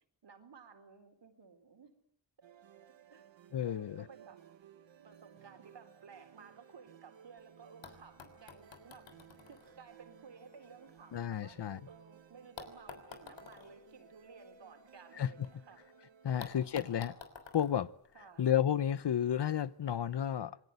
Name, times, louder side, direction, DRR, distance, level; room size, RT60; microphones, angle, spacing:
voice 1, 0.2-1.9 3.1-3.2 3.6-4.4 5.0-9.1 9.5-15.9 16.3-16.7 18.1-18.5, right 5 dB, 70° right, 4.1 m, -56 dB
sound 1, 2.4-17.0, right 7 dB, 85° right, 1.7 m, -59 dB
voice 2, 3.5-4.0 11.1-11.8 15.2-15.5 16.2-17.2 17.5-17.9 18.4-20.6, left 9 dB, 65° left, 1.0 m, -32 dB
sound 2, 7.4-7.5 7.8-11.9 12.6-15.5 15.8-15.9 16.4-18.8 19.8-19.9, left 5 dB, 80° left, 3.5 m, -53 dB
27.0 x 20.5 x 8.2 m
cardioid pair, 75°, 44 cm